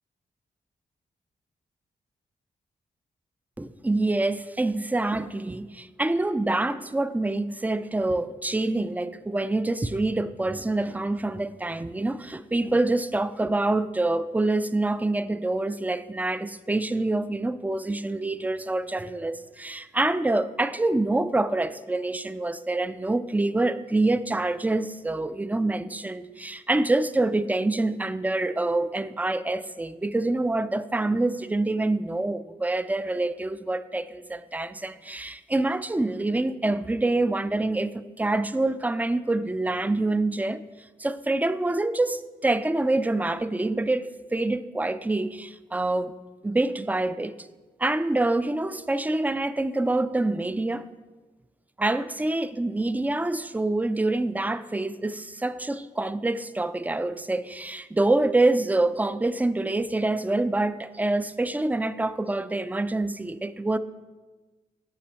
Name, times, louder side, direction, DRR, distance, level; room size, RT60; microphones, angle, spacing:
voice 1, 3.6-40.6 41.0-46.1 46.4-47.3 47.8-50.9 51.8-63.8, right 2 dB, 10° right, 14 dB, 0.4 m, -26 dB
6.0 x 5.7 x 4.3 m, 1.3 s
supercardioid pair, 40°, 18 cm